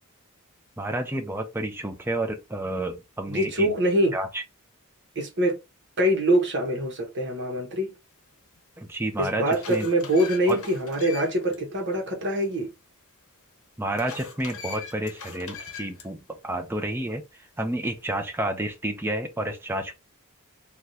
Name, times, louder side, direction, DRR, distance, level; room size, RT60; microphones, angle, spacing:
voice 1, 0.8-3.7 4.1-4.4 8.8-9.9 10.5-10.6 13.8-17.2 17.6-19.9, right 1 dB, 10° right, 0.5 m, -30 dB
voice 2, 3.3-4.2 5.1-5.6 6.0-7.9 9.2-12.7, right 1 dB, 55° right, 1.1 m, -24 dB
sound 1, 8.6-8.7 9.2-11.6 11.9-12.0 13.9-16.1, left 6 dB, 65° left, 0.8 m, -41 dB
3.5 x 2.3 x 2.7 m
head